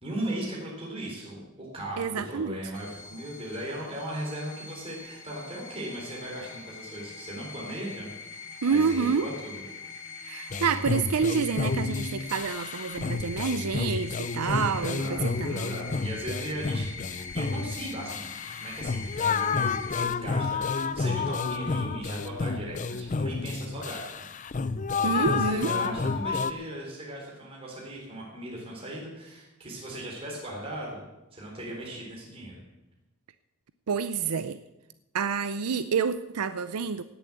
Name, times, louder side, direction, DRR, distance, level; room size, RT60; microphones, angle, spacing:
voice 1, 0.0-8.1 8.7-9.7 14.8-15.2 15.5-18.3 18.6-24.6 25.0-31.1 31.3-32.6, right 1 dB, 25° right, -3 dB, 4.1 m, -37 dB
voice 2, 2.0-2.6 8.6-9.3 10.2-15.7 25.0-25.7 33.9-34.6 35.1-37.0, right 5 dB, 85° right, 12 dB, 0.6 m, -28 dB
sound 1, 2.7-20.0, left 5 dB, 55° left, 2.3 m, -43 dB
sound 2, 10.5-26.5, left 4 dB, 35° left, 0.5 m, -30 dB
18.0 x 7.1 x 8.0 m, 0.98 s
head